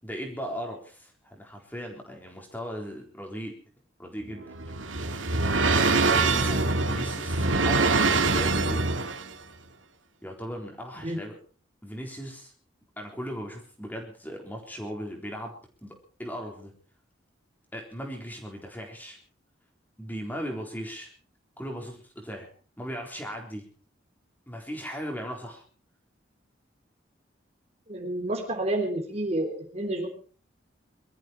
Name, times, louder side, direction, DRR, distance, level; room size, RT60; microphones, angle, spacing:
voice 1, 0.0-3.6 4.0-4.6 5.6-8.9 10.2-11.4 11.8-12.5 13.0-15.5 15.8-16.7 17.7-19.2 20.0-21.1 21.6-22.5 22.8-23.7 24.5-25.6, equal, 10° left, 2 dB, 4.0 m, -37 dB
sound 1, 4.2-9.3, right 3 dB, 85° right, 2.1 m, -24 dB
voice 2, 27.9-30.1, right 1 dB, 35° right, 3 dB, 3.4 m, -29 dB
23.0 x 13.5 x 4.6 m, 0.39 s
head